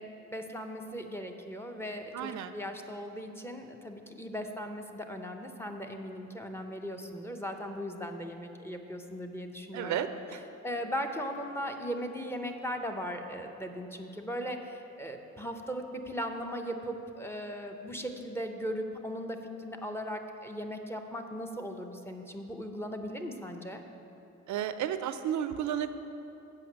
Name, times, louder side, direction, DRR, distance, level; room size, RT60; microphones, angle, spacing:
voice 1, 0.0-10.1 10.6-23.8, equal, 10° left, 4 dB, 0.7 m, -38 dB
voice 2, 2.1-2.5 9.7-10.4 24.5-25.9, right 10 dB, 70° right, 11 dB, 0.5 m, -33 dB
7.7 x 5.3 x 7.2 m, 2.9 s
cardioid pair, 90°, 30 cm